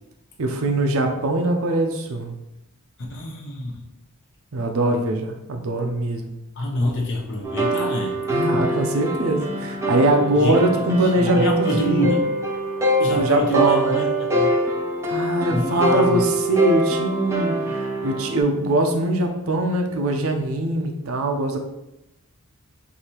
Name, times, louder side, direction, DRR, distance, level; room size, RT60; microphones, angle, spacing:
voice 1, 0.4-2.3 4.5-6.3 8.3-12.2 13.1-14.1 15.0-17.6 18.0-21.6, right 2 dB, 65° right, 4 dB, 0.6 m, -22 dB
voice 2, 3.1-3.8 4.9-5.0 6.6-8.1 10.4-10.7 11.2-12.2 13.0-14.0 14.3-14.5 15.5-16.2, equal, 55° left, -1 dB, 0.7 m, -26 dB
sound 1, 7.4-18.4, right 1 dB, 15° right, 0.6 m, -24 dB
4.8 x 2.7 x 2.9 m, 0.89 s
head